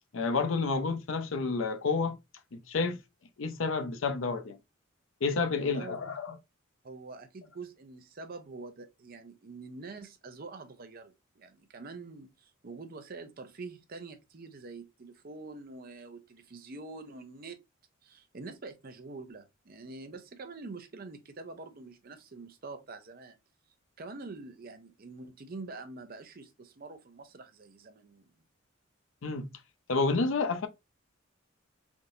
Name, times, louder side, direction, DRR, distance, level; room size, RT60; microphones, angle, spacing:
voice 1, 0.1-2.2 2.5-3.0 3.4-4.6 5.2-6.4 29.2-29.5 29.9-30.7, left 4 dB, 70° left, 0.6 m, -30 dB
voice 2, 5.6-6.0 6.8-17.6 18.0-23.4 24.0-28.3, right 3 dB, 45° right, 0.6 m, -45 dB
3.5 x 2.6 x 2.7 m
head